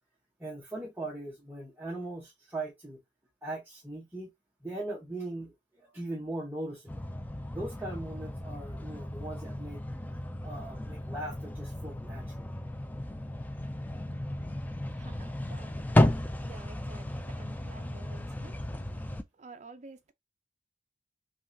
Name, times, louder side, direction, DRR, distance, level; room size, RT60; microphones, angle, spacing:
voice 1, 0.4-3.0 3.4-4.3 4.6-7.0 7.5-9.8 10.4-12.5, right 2 dB, 10° right, 0.9 m, -39 dB
sound 1, 6.9-19.2, left 1 dB, 10° left, 0.3 m, -33 dB
voice 2, 14.9-18.6 18.9-20.1, right 3 dB, 40° right, 0.5 m, -52 dB
5.4 x 2.4 x 2.6 m
head